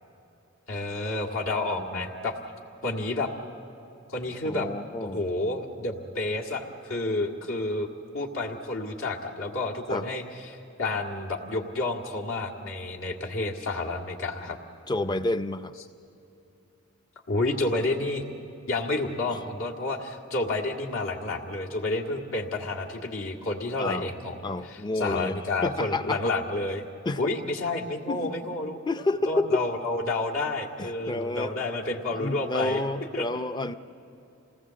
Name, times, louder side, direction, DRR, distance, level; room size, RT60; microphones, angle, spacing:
voice 1, 0.7-2.3 2.8-3.3 4.1-4.7 5.0-7.9 8.1-14.6 17.3-18.2 18.7-26.8 27.2-28.8 29.3-32.9 33.1-33.3, left 2 dB, 75° left, -2 dB, 2.0 m, -30 dB
voice 2, 4.4-5.2 9.9-10.0 14.9-15.7 23.8-24.1 24.4-26.2 27.0-27.2 28.1-28.6 28.9-29.6 30.8-31.5 32.1-33.7, left 2 dB, 20° left, 11 dB, 0.5 m, -30 dB
27.0 x 18.5 x 7.6 m, 2.9 s
head